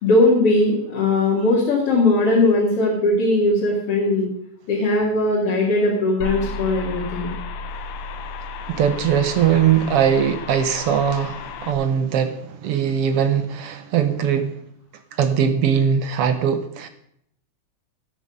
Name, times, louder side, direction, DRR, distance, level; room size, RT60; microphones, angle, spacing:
voice 1, 0.0-4.3 4.7-7.3, left 2 dB, 50° left, 3.1 m, -19 dB
sound 1, 6.2-11.7, left 3 dB, 90° left, 2.3 m, -33 dB
voice 2, 8.7-14.6 15.2-16.9, right 8 dB, 65° right, 1.6 m, -20 dB
17.5 x 6.2 x 5.3 m
omnidirectional pair, 3.4 m